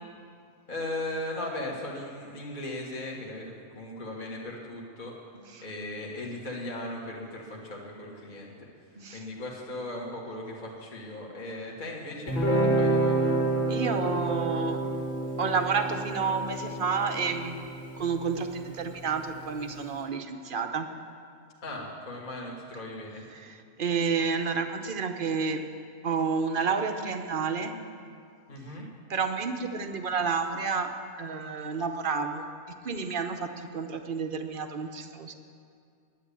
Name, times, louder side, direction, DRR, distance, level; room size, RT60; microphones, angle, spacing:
voice 1, 0.7-5.1 5.6-8.5 9.1-13.3 21.6-23.2 28.5-28.9, left 1 dB, 35° left, -3 dB, 1.6 m, -37 dB
voice 2, 5.3-5.6 9.0-9.3 13.7-14.8 15.4-17.6 18.0-20.9 23.3-25.6 26.0-27.8 29.1-30.9 31.2-32.4 32.8-35.3, right 5 dB, 45° right, 6 dB, 0.8 m, -30 dB
Guitar, 12.3-19.4, right 2 dB, 55° left, 2.3 m, -29 dB
10.5 x 9.7 x 8.4 m, 2.3 s
omnidirectional pair, 1.5 m